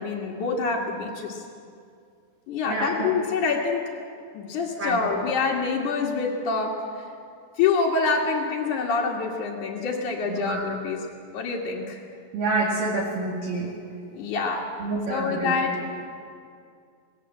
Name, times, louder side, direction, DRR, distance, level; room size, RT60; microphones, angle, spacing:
voice 1, 0.0-1.4 2.5-3.9 4.3-6.9 7.6-11.1 11.3-12.0 14.1-14.8 15.1-15.9, left 4 dB, 55° left, -5 dB, 3.1 m, -26 dB
voice 2, 2.7-3.1 4.8-5.0 10.3-10.6 12.3-13.7 14.8-15.5, right 3 dB, 60° right, -4 dB, 3.8 m, -27 dB
26.5 x 20.0 x 7.6 m, 2.3 s
omnidirectional pair, 4.7 m